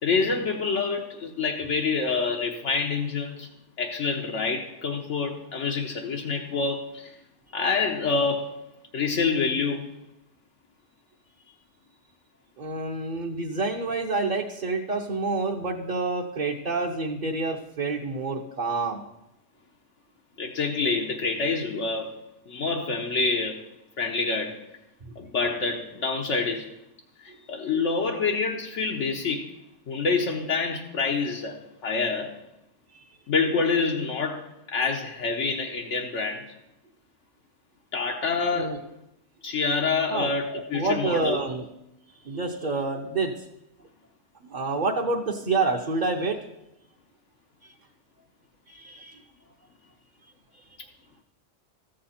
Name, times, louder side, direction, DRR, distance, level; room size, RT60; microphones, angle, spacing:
voice 1, 0.0-3.5 3.8-7.1 7.5-8.5 8.9-9.9 20.4-22.1 22.5-23.6 24.0-24.6 25.2-26.7 27.2-29.5 29.9-32.3 33.3-36.4 37.9-38.8 39.4-41.4, left 4 dB, 80° left, 0 dB, 1.2 m, -27 dB
voice 2, 12.6-19.0 25.1-25.2 32.9-33.0 38.5-38.8 40.1-40.3 40.7-41.6 42.2-43.3 44.4-46.4 48.7-49.2 50.5-50.6, right 3 dB, 45° right, -1 dB, 1.0 m, -28 dB
14.0 x 7.7 x 4.3 m, 0.88 s
omnidirectional pair, 1.2 m